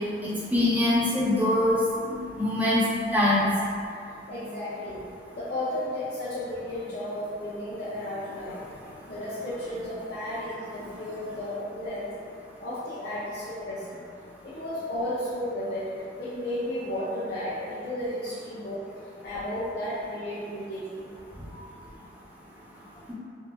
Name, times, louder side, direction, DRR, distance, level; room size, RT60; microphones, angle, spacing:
voice 1, 0.2-1.8 2.1-2.8 3.1-3.5, left 1 dB, 10° right, -9 dB, 0.7 m, -23 dB
voice 2, 4.3-5.0 5.3-8.6 9.1-12.1 12.6-14.0 14.4-15.8 16.2-18.8 19.2-21.1, left 1 dB, 60° left, -11 dB, 0.6 m, -33 dB
3.5 x 2.6 x 2.3 m, 2.4 s
head